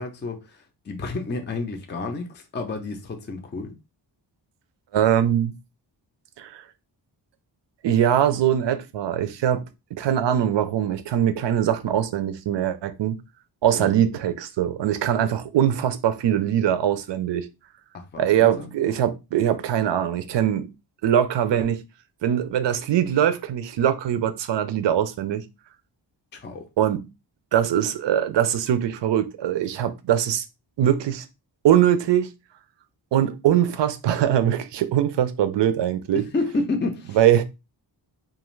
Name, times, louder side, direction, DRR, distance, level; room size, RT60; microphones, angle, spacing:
voice 1, 0.0-3.7 13.7-13.9 17.9-18.7 26.3-26.7 36.3-37.2, left 3 dB, 25° left, 0.4 m, -30 dB
voice 2, 4.9-5.5 6.4-6.6 7.8-9.6 9.9-13.2 13.6-17.5 18.2-20.7 21.0-21.8 22.2-25.4 26.8-27.0 27.5-30.4 30.8-31.3 31.6-32.3 33.1-36.2 37.1-37.4, right 10 dB, 70° right, 0.5 m, -22 dB
2.4 x 2.4 x 3.1 m
wide cardioid pair, 140°, 45 cm